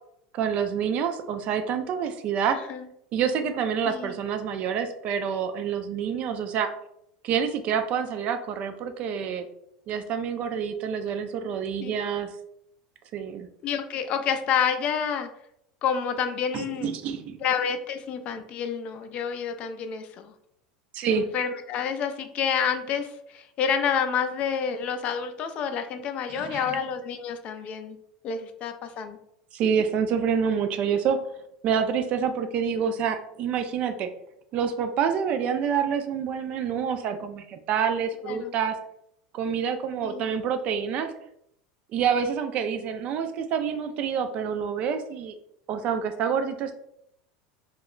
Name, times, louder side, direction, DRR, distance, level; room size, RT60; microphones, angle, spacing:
voice 1, 0.3-2.6 3.1-6.7 7.2-9.5 9.9-12.3 13.1-13.5 16.5-17.4 20.9-21.3 26.4-26.8 29.5-31.2 31.6-34.1 34.5-38.8 39.3-41.1 41.9-45.3 45.7-46.8, right 7 dB, 45° right, 8 dB, 0.3 m, -27 dB
voice 2, 2.5-2.9 3.8-4.1 11.8-11.9 13.6-15.3 15.8-16.9 17.4-20.3 21.1-28.0 28.2-29.2 38.3-38.5 40.0-40.2, left 7 dB, 45° left, 8 dB, 0.3 m, -29 dB
2.2 x 2.0 x 3.6 m, 0.75 s
supercardioid pair, 120°, 3 cm